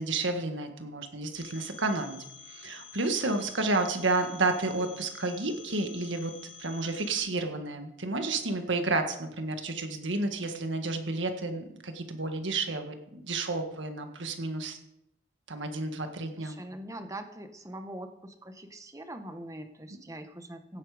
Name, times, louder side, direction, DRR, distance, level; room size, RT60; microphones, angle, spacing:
voice 1, 0.0-2.2 2.5-6.3 6.6-14.8 15.5-16.6, right 3 dB, 80° right, 5 dB, 1.8 m, -31 dB
Telephone, 1.3-7.2, left 6 dB, 45° left, 3.6 m, -49 dB
voice 2, 16.4-20.8, right 1 dB, 15° right, 7 dB, 1.1 m, -42 dB
16.5 x 8.7 x 5.0 m, 0.81 s
head